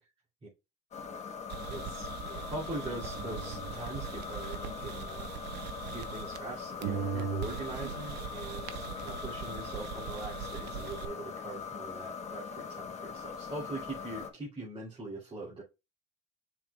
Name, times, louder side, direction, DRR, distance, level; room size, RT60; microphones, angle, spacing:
sound 1, 0.9-14.3, left 6 dB, 40° left, 1.2 m, -41 dB
sound 2, 1.5-6.5 6.8-11.1, right 7 dB, 85° right, 0.9 m, -40 dB
voice 1, 1.7-5.6 5.9-15.6, right 2 dB, 35° right, -6 dB, 2.8 m, -42 dB
7.5 x 5.8 x 2.3 m, 0.26 s
cardioid pair, 110°, 17 cm